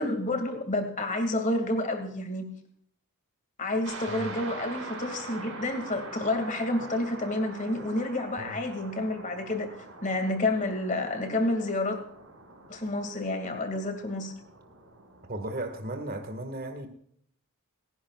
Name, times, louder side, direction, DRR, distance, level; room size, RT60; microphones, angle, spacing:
voice 1, 0.0-2.5 3.6-9.7 10.0-12.0 12.7-14.3, left 2 dB, 35° left, 6 dB, 2.2 m, -29 dB
sound 1, 3.8-15.9, right 3 dB, 60° right, 5.8 m, -44 dB
voice 2, 15.3-16.9, right 1 dB, 40° right, 5 dB, 1.8 m, -35 dB
29.0 x 10.5 x 2.4 m, 0.66 s
head